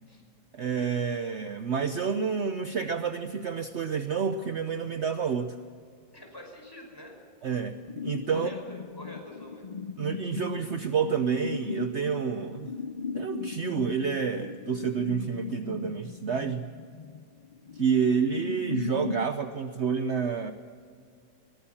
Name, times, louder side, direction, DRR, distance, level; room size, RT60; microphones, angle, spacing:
voice 1, 0.5-5.5 7.4-8.5 10.0-12.7 13.1-16.7 17.8-20.5, right 6 dB, 55° right, 8 dB, 1.0 m, -29 dB
voice 2, 6.1-7.2 8.3-9.7, left 1 dB, 15° left, 1 dB, 5.5 m, -45 dB
sound 1, 7.9-19.3, left 5 dB, 55° left, 0.4 m, -37 dB
22.0 x 18.0 x 7.3 m, 2.2 s
omnidirectional pair, 1.5 m